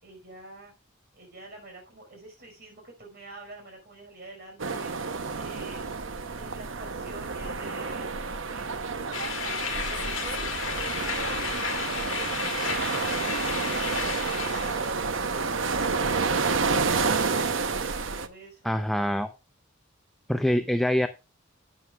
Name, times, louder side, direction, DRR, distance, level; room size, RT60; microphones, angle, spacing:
voice 1, 0.0-0.7 1.1-4.9 5.3-5.9 6.3-11.2 11.6-13.7 14.0-18.8, right 2 dB, 55° right, 2 dB, 5.2 m, -47 dB
sound 1, 4.6-18.3, right 4 dB, 75° right, 0.9 m, -29 dB
sound 2, 9.1-14.9, left 5 dB, 75° left, 2.0 m, -33 dB
voice 2, 18.6-19.3 20.3-21.1, equal, ahead, 8 dB, 0.6 m, -24 dB
11.5 x 9.3 x 2.4 m, 0.27 s
head